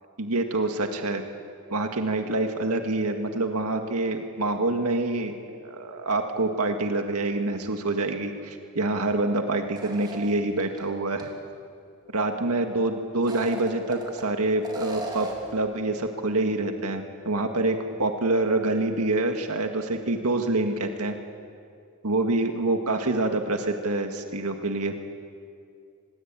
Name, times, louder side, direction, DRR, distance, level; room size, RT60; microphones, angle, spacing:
voice 1, 0.2-1.2 1.7-11.3 12.1-21.2 22.0-24.9, right 2 dB, 90° right, 5 dB, 1.9 m, -26 dB
sound 1, 9.7-10.8 11.2-11.3 13.1-14.2 14.6-15.5, right 2 dB, 20° right, 3.5 m, -36 dB
25.5 x 21.0 x 9.1 m, 2.3 s
head